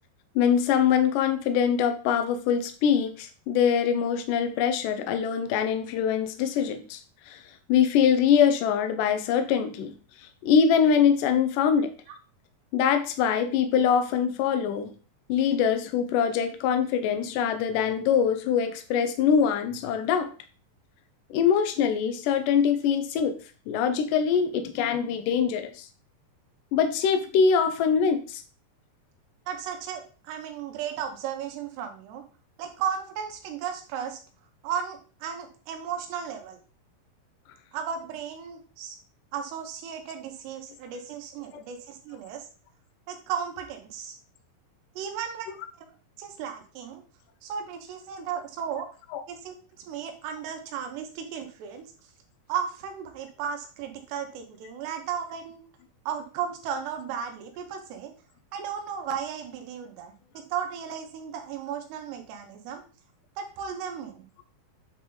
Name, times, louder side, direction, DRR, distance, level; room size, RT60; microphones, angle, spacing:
voice 1, 0.3-7.0 7.3-7.4 7.7-9.9 10.4-11.9 12.7-14.9 15.3-20.3 21.3-23.4 23.7-25.9 26.7-28.4 41.5-41.6 49.1-49.2, left 7 dB, 90° left, 8 dB, 1.8 m, -23 dB
voice 2, 29.5-32.3 32.6-34.2 34.6-36.6 37.7-39.0 39.3-42.5 43.1-44.2 45.0-45.9 46.2-47.0 47.4-48.9 49.3-51.8 52.5-55.6 56.1-58.1 58.5-60.1 60.5-62.8 63.4-64.3, right 8 dB, 85° right, 4 dB, 3.1 m, -35 dB
9.0 x 4.3 x 3.8 m, 0.37 s
omnidirectional pair, 4.8 m